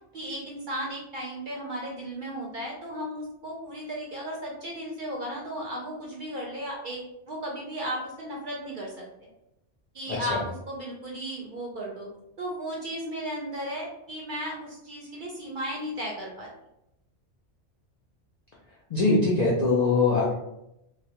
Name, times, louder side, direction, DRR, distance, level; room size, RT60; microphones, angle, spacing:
voice 1, 0.1-7.0 7.3-9.3 9.9-12.1 12.4-16.5, equal, 60° right, -2 dB, 0.6 m, -35 dB
voice 2, 10.1-10.4 18.9-20.3, left 3 dB, 65° left, -5 dB, 0.4 m, -22 dB
2.2 x 2.1 x 2.7 m, 0.84 s
omnidirectional pair, 1.2 m